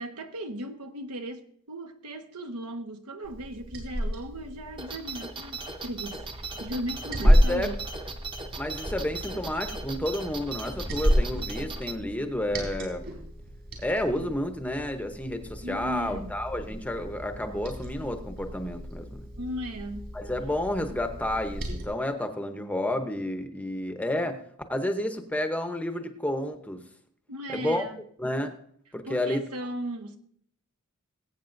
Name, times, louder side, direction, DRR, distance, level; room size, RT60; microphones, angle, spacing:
voice 1, 0.0-7.8 15.6-16.4 19.3-20.1 27.3-28.0 29.0-30.2, equal, 85° right, 1.1 m, -37 dB
Liquid, 3.2-21.9, equal, 55° right, 3.9 m, -31 dB
sound 1, 4.8-11.9, right 3 dB, 20° right, 0.9 m, -39 dB
voice 2, 7.2-7.7 8.6-13.0 13.8-19.2 20.1-24.4 24.7-26.8 27.5-27.8 28.2-28.5 28.9-29.4, left 1 dB, 5° left, 0.8 m, -30 dB
21.5 x 8.4 x 2.6 m
head